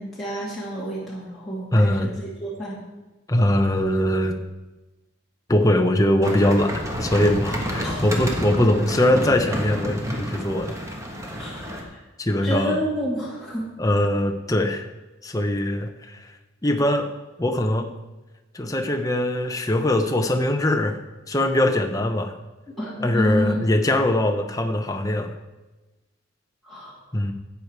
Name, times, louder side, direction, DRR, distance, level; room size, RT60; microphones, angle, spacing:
voice 1, 0.0-2.8 7.8-8.1 8.4-8.5 11.4-12.0 12.4-13.7 22.8-23.7 26.6-27.0, equal, ahead, -8 dB, 2.4 m, -29 dB
voice 2, 1.7-2.1 3.3-4.4 5.5-10.7 12.2-12.8 13.8-14.8 15.2-16.3 16.6-17.1 17.4-17.9 18.5-21.0 21.3-22.3 23.0-25.3 27.1-27.3, left 1 dB, 15° left, 5 dB, 0.8 m, -21 dB
sound 1, 6.2-11.8, equal, 15° right, 1.3 m, -29 dB
12.0 x 8.3 x 4.6 m, 1.1 s
head